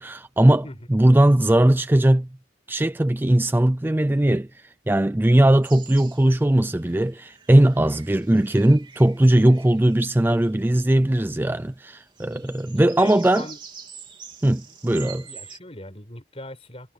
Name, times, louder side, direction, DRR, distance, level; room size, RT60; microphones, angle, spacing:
voice 1, 0.0-0.6 0.9-2.3 2.7-13.5 14.4-15.2, right 1 dB, 10° right, 0.4 m, -19 dB
sound 1, 5.6-15.6, right 6 dB, 25° right, 3.4 m, -46 dB
voice 2, 12.4-12.7 13.0-13.6 14.6-14.8 15.2-16.9, left 1 dB, 30° left, 6.2 m, -40 dB
head